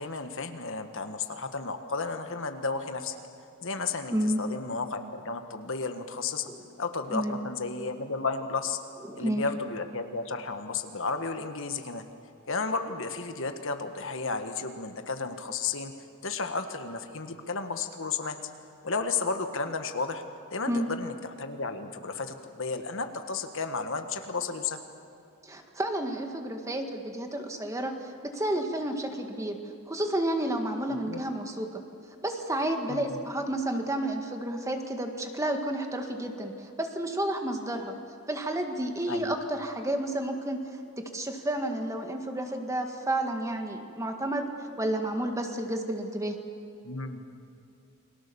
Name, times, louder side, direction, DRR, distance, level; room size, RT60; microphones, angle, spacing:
voice 1, 0.0-3.1 3.6-6.5 6.8-8.8 9.1-12.0 12.5-15.9 16.2-18.4 18.8-20.2 20.5-24.8 30.9-31.2 32.9-33.2 39.1-39.3 46.8-47.2, left 4 dB, 60° left, 7 dB, 1.6 m, -33 dB
voice 2, 9.1-9.4 20.7-20.9 25.4-27.9 28.2-29.6 29.9-31.8 32.2-37.9 38.3-40.6 41.0-46.4, right 1 dB, 15° right, 4 dB, 1.8 m, -31 dB
29.5 x 22.5 x 7.1 m, 2.7 s
head